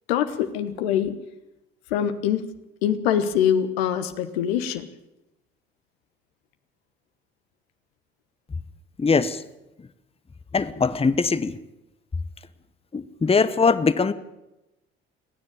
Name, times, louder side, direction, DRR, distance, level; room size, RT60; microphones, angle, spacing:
voice 1, 0.1-1.1 1.9-2.4 2.8-4.9, left 9 dB, 70° left, 1.3 m, -24 dB
voice 2, 9.0-9.4 10.5-11.6 12.9-14.1, left 4 dB, 20° left, 1.1 m, -21 dB
28.5 x 10.0 x 9.1 m
figure-of-eight pair, 50°, 31 cm